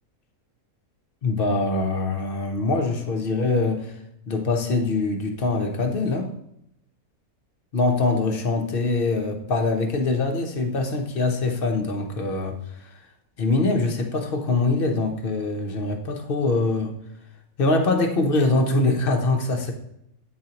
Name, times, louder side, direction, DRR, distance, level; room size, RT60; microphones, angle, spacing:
voice 1, 1.2-3.9 4.3-6.3 7.7-12.6 13.4-16.9 17.6-19.7, left 3 dB, 50° left, 4 dB, 0.9 m, -23 dB
9.2 x 4.1 x 2.9 m, 0.78 s
omnidirectional pair, 1.4 m